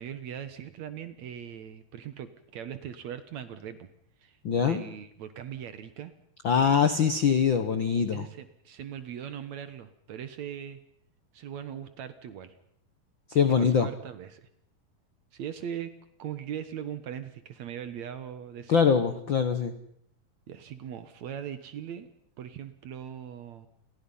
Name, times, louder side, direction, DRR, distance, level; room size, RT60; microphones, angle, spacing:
voice 1, 0.0-3.9 4.2-6.1 8.1-10.8 11.3-12.5 13.4-14.5 15.3-15.9 16.2-18.9 20.5-22.1 22.4-23.7, right 9 dB, 60° right, 11 dB, 2.2 m, -40 dB
voice 2, 4.4-4.8 6.4-8.3 13.3-13.9 18.7-19.7, left 6 dB, 80° left, 10 dB, 1.0 m, -23 dB
29.5 x 23.0 x 5.6 m, 0.70 s
omnidirectional pair, 4.2 m